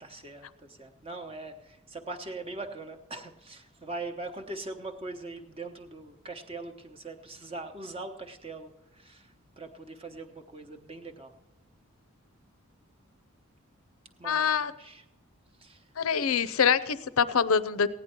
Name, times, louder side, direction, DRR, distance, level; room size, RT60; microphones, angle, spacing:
voice 1, 0.0-11.3 14.2-15.0 15.6-15.8, right 2 dB, 25° right, 5 dB, 0.9 m, -41 dB
voice 2, 14.2-14.7 16.0-17.9, left 7 dB, 75° left, 16 dB, 0.6 m, -25 dB
16.0 x 9.9 x 4.5 m, 0.98 s
head